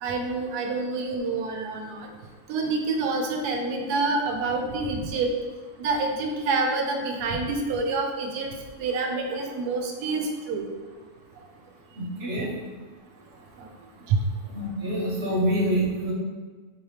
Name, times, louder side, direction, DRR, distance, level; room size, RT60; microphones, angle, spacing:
voice 1, 0.0-2.1 2.5-5.3 5.8-8.5 8.8-10.7 14.1-14.2, right 3 dB, 85° right, 3 dB, 1.1 m, -27 dB
voice 2, 12.0-12.5 14.5-16.1, right 1 dB, 50° right, -4 dB, 0.8 m, -26 dB
3.9 x 3.2 x 2.8 m, 1.4 s
omnidirectional pair, 1.6 m